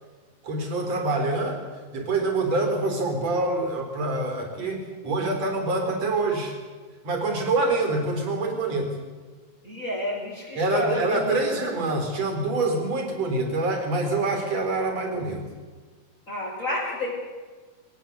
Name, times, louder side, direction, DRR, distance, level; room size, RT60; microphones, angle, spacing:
voice 1, 0.4-1.6 1.9-6.6 7.0-9.0 10.6-15.4, right 2 dB, 45° right, 4 dB, 5.2 m, -26 dB
voice 2, 9.6-11.5 16.3-17.1, left 1 dB, 20° left, -5 dB, 6.0 m, -30 dB
23.0 x 19.5 x 8.2 m, 1.4 s
omnidirectional pair, 4.2 m